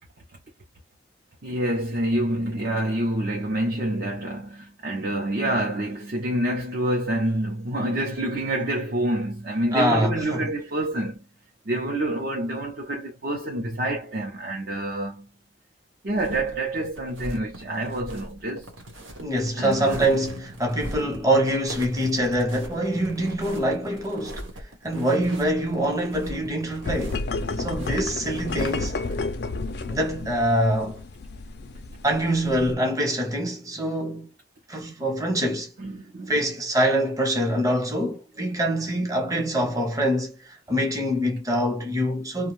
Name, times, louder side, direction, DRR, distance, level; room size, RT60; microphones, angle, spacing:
voice 1, 1.4-11.2 11.7-15.3 16.0-18.7 19.6-20.1 27.5-27.7 35.8-36.4, right 1 dB, 50° right, 0.7 m, -27 dB
voice 2, 9.7-10.5 19.2-27.2 27.6-29.0 29.9-31.0 32.0-34.3 34.7-35.7 36.3-42.5, right 1 dB, 20° right, 0.8 m, -25 dB
sound 1, 16.1-29.2, right 1 dB, 90° right, 1.1 m, -40 dB
sound 2, 26.8-32.7, left 3 dB, 60° left, 0.4 m, -32 dB
2.6 x 2.3 x 3.1 m
head